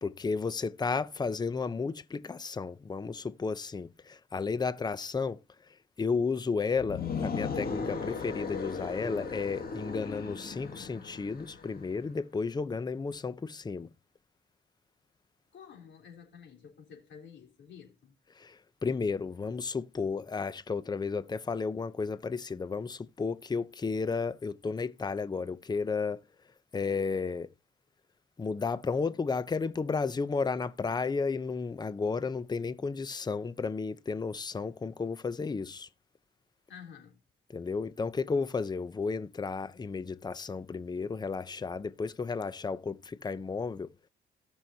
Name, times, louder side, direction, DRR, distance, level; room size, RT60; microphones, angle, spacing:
voice 1, 0.0-5.4 6.0-13.9 18.4-26.2 26.7-27.5 28.4-35.9 37.5-43.9, left 4 dB, 20° left, 0.6 m, -33 dB
sound 1, 6.8-11.8, left 5 dB, 50° left, 2.2 m, -37 dB
voice 2, 15.5-18.1 36.7-37.2, left 7 dB, 65° left, 3.5 m, -51 dB
17.0 x 6.3 x 2.8 m
cardioid pair, 90°, 20 cm